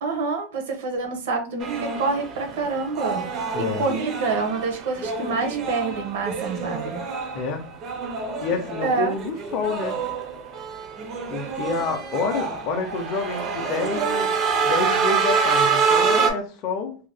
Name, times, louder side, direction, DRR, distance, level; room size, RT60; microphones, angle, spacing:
voice 1, 0.0-3.3 3.6-7.0 8.8-9.1, right 4 dB, 75° right, 4 dB, 0.7 m, -27 dB
sound 1, 1.6-16.3, right 5 dB, 25° right, 0.4 m, -26 dB
voice 2, 3.5-3.8 7.3-7.6 8.4-10.0 11.3-14.3 14.6-17.0, left 4 dB, 35° left, 3 dB, 0.4 m, -28 dB
2.7 x 2.1 x 3.2 m, 0.37 s
supercardioid pair, 175°, 0 cm